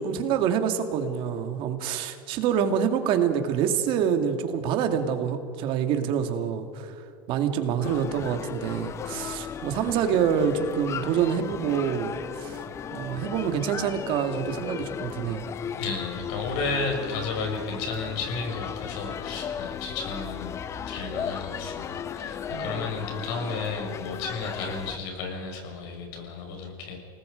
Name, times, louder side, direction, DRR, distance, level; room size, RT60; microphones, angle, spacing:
voice 1, 0.0-7.0 7.3-12.6 12.9-15.5 22.5-22.8, right 8 dB, 50° right, 6 dB, 2.3 m, -26 dB
sound 1, 7.8-25.0, left 8 dB, 25° left, 0.6 m, -36 dB
voice 2, 15.8-20.6 20.9-27.0, left 4 dB, 65° left, 2 dB, 6.1 m, -33 dB
29.5 x 19.0 x 5.2 m, 2.6 s
supercardioid pair, 145°, 11 cm